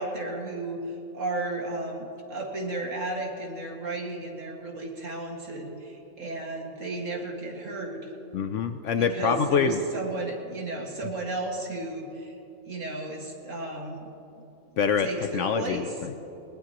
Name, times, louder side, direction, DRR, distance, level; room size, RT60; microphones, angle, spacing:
voice 1, 0.0-8.1 9.0-12.4 12.6-14.1 14.3-14.4 15.0-15.9, right 2 dB, 60° right, 0 dB, 2.3 m, -34 dB
voice 2, 8.3-9.8 14.8-16.1, left 6 dB, 65° left, 8 dB, 0.9 m, -25 dB
20.0 x 20.0 x 3.0 m, 3.0 s
omnidirectional pair, 1.5 m